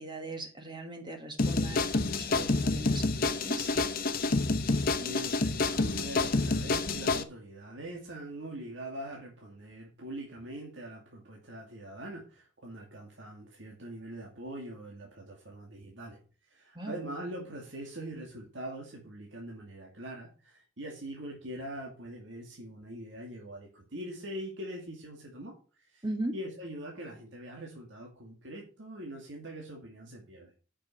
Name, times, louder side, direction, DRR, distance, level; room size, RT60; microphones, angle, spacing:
voice 1, 0.0-3.7 16.7-17.0 26.0-26.4, right 1 dB, 25° right, 4 dB, 1.5 m, -39 dB
sound 1, 1.4-7.2, left 3 dB, 50° left, 1.0 m, -28 dB
voice 2, 4.9-16.2 16.5-26.0 26.3-30.5, right 1 dB, 65° right, -1 dB, 2.3 m, -43 dB
8.5 x 6.2 x 6.4 m, 0.36 s
head